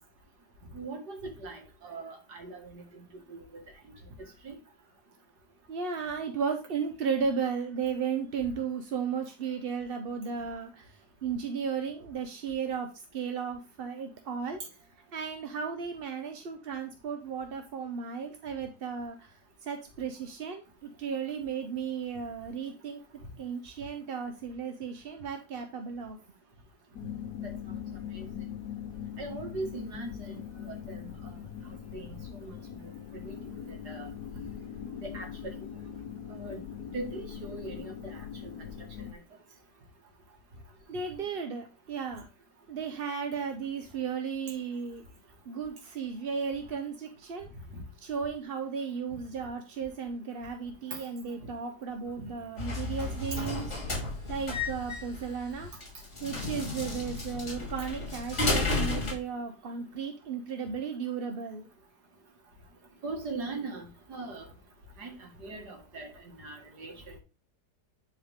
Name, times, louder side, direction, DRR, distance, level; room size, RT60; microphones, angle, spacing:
voice 1, 0.7-3.6 4.4-4.5 28.1-28.3 29.2-31.1 31.9-32.5 32.8-33.6 33.9-34.1 35.0-35.5 36.3-36.6 36.9-38.2 38.6-38.7 47.7-47.8 63.0-64.5 65.0-67.2, right 3 dB, 70° right, 2.5 m, -41 dB
voice 2, 5.7-14.6 15.1-23.0 23.4-26.2 40.9-42.3 42.7-45.0 45.5-47.5 48.0-55.7 56.2-61.7, right 6 dB, 50° right, 0.7 m, -35 dB
sound 1, 26.9-39.1, left 9 dB, 65° left, 1.2 m, -41 dB
sound 2, 52.6-59.1, left 2 dB, 40° left, 3.0 m, -32 dB
10.0 x 4.8 x 3.6 m
omnidirectional pair, 1.8 m